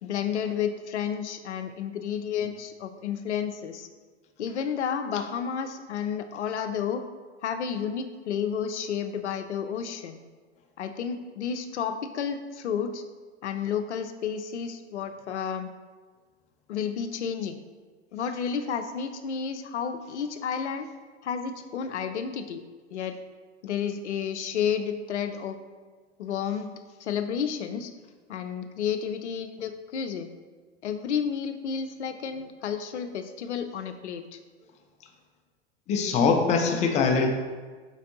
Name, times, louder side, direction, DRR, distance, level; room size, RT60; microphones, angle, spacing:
voice 1, 0.0-3.9 4.4-7.0 7.4-10.2 10.8-13.0 13.4-15.7 16.7-17.6 18.1-20.9 21.2-22.6 22.9-23.2 23.6-25.6 26.2-26.7 27.0-27.9 28.3-30.3 30.8-34.4, left 7 dB, 75° left, 8 dB, 0.5 m, -31 dB
voice 2, 35.9-37.3, left 5 dB, 20° left, 4 dB, 0.4 m, -22 dB
4.5 x 4.1 x 2.8 m, 1.4 s
figure-of-eight pair, 100°, 34 cm